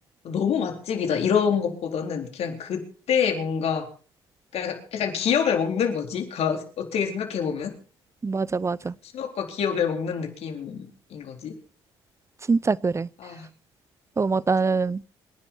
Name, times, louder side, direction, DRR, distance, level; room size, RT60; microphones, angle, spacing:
voice 1, 0.2-3.9 4.5-7.7 9.1-11.5 13.2-13.5, left 7 dB, 65° left, 4.1 m, -26 dB
voice 2, 8.2-8.9 12.5-13.1 14.2-15.0, right 4 dB, 25° right, 0.7 m, -23 dB
26.5 x 10.5 x 4.5 m
hypercardioid pair, 55°, 11 cm